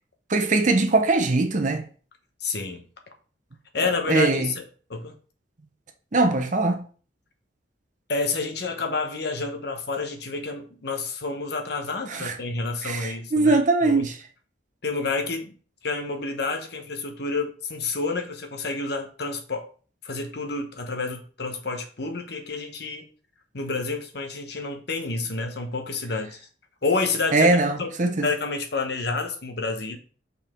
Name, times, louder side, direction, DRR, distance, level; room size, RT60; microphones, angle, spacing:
voice 1, 0.3-1.8 3.8-4.5 6.1-6.8 12.1-12.4 12.8-14.2 27.3-28.3, right 3 dB, 40° right, 0.8 m, -21 dB
voice 2, 2.4-2.8 3.7-4.6 4.9-5.2 8.1-14.1 14.8-15.5 15.8-19.7 20.0-23.0 23.5-26.4 26.8-27.5 27.8-27.9 28.2-30.0, left 3 dB, 60° left, 1.0 m, -29 dB
5.4 x 4.8 x 3.6 m
head